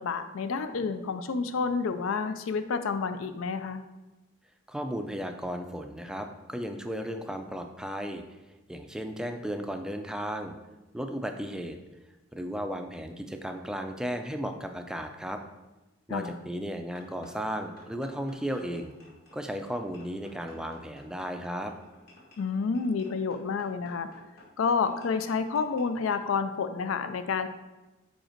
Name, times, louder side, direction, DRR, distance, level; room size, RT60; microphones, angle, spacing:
voice 1, 0.0-3.8 16.1-16.4 22.4-24.1 24.6-27.5, left 5 dB, 80° left, 10 dB, 0.4 m, -29 dB
voice 2, 4.7-8.2 8.7-10.5 10.9-11.8 12.3-15.4 16.1-18.9 19.3-21.7, equal, 5° right, 5 dB, 0.3 m, -35 dB
sound 1, 16.9-26.2, left 2 dB, 50° left, 1.9 m, -55 dB
5.3 x 4.9 x 4.4 m, 1.1 s
head